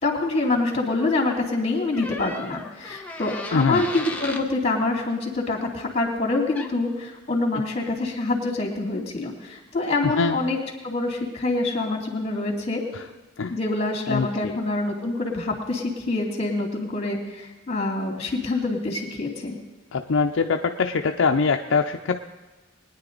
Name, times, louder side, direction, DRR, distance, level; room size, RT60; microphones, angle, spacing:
voice 1, 0.0-10.6 10.8-12.8 13.5-19.6, left 2 dB, 30° left, 0 dB, 2.5 m, -26 dB
sound 1, 1.9-4.5 6.6-6.8, left 2 dB, 10° left, 0.9 m, -35 dB
voice 2, 3.5-3.9 10.0-10.4 12.9-13.0 13.4-13.6 14.1-14.6 19.9-22.2, left 4 dB, 65° left, 5 dB, 0.5 m, -23 dB
21.0 x 10.0 x 3.9 m, 1.2 s
head